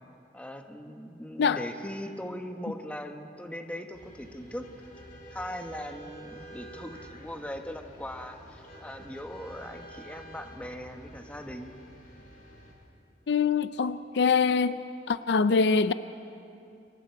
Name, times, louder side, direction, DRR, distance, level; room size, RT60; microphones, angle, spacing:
voice 1, 0.3-4.6 5.3-11.8, equal, 10° left, 4 dB, 1.3 m, -40 dB
sound 1, 3.9-12.7, equal, 50° left, 4.4 m, -48 dB
voice 2, 13.3-14.8 15.1-15.9, left 5 dB, 65° left, 13 dB, 0.5 m, -24 dB
30.0 x 25.5 x 4.6 m, 2.6 s
head